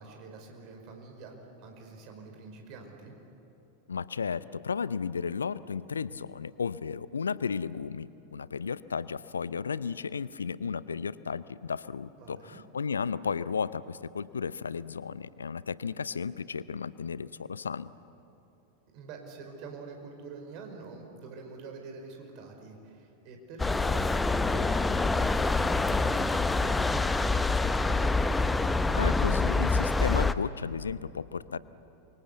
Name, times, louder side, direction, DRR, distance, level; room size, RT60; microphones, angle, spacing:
voice 1, 0.0-1.3 1.6-3.1 12.2-12.6 18.9-28.0, right 4 dB, 40° right, 3 dB, 5.0 m, -46 dB
voice 2, 3.9-17.9 28.9-31.6, left 6 dB, 70° left, 18 dB, 0.6 m, -34 dB
sound 1, 23.6-30.3, left 3 dB, 10° left, 0.8 m, -26 dB
28.0 x 24.5 x 8.3 m, 2.8 s
figure-of-eight pair, 90°, 0 cm